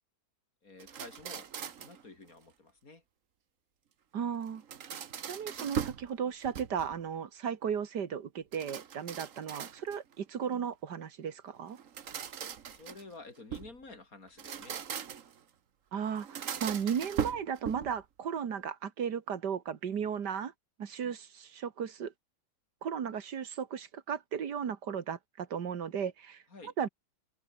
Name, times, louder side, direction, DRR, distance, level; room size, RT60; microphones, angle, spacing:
voice 1, 0.6-3.0 12.7-14.8 26.5-26.7, left 3 dB, 55° left, 4.6 m, -51 dB
sound 1, 0.8-2.0 4.4-6.1 6.4-7.0 8.5-10.1 11.7-13.8 14.3-15.4 16.2-18.0, right 8 dB, 50° right, 1.4 m, -39 dB
voice 2, 4.1-4.6 5.2-11.8 15.9-20.5 20.8-22.1 22.8-26.9, right 7 dB, 80° right, 2.1 m, -35 dB
open air
omnidirectional pair, 1.8 m